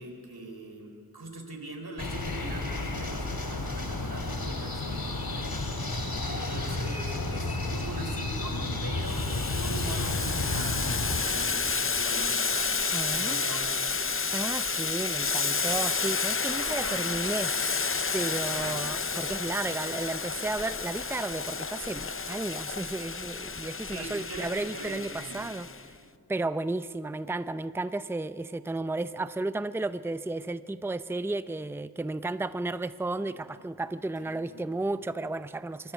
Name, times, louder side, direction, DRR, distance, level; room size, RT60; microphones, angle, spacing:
voice 1, 0.0-5.7 6.4-12.8 13.1-13.9 16.6-17.2 18.4-18.8 23.9-25.4 34.2-34.6, right 2 dB, 85° right, 3 dB, 3.6 m, -42 dB
sound 1, 2.0-11.2, left 2 dB, 80° left, 2.7 m, -32 dB
Boiling, 9.0-25.8, left 4 dB, 35° left, 0.6 m, -31 dB
voice 2, 12.9-13.4 14.3-17.5 18.1-25.7 26.3-35.9, right 2 dB, 5° right, 13 dB, 0.5 m, -33 dB
25.0 x 23.5 x 8.1 m, 2.4 s
wide cardioid pair, 60°, 36 cm